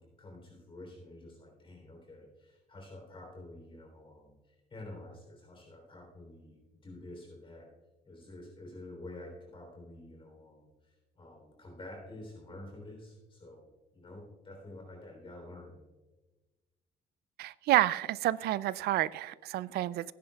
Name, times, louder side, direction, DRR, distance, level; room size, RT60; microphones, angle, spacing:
voice 1, 0.0-7.7 8.0-15.8, left 1 dB, 30° left, 1 dB, 3.3 m, -49 dB
voice 2, 17.4-20.1, right 15 dB, 70° right, 19 dB, 0.4 m, -29 dB
17.5 x 10.0 x 2.3 m, 1.2 s
cardioid pair, 110°, 17 cm